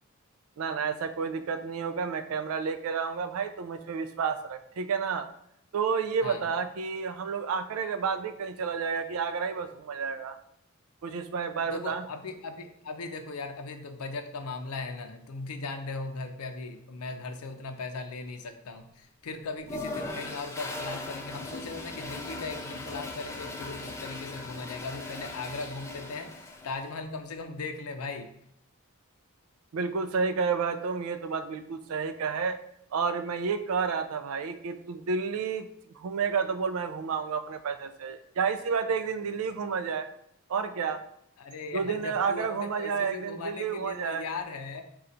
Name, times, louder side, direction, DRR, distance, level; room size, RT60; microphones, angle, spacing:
voice 1, 0.6-5.3 5.7-10.4 11.0-12.1 29.7-32.6 32.9-35.7 36.0-40.1 40.5-41.0 41.7-44.2, right 5 dB, 75° right, 9 dB, 0.4 m, -30 dB
voice 2, 11.6-28.3 41.4-44.9, left 3 dB, 85° left, 7 dB, 0.5 m, -38 dB
Toilet flush, 19.6-26.9, left 2 dB, 10° left, 0.3 m, -39 dB
3.8 x 2.3 x 4.2 m, 0.71 s
head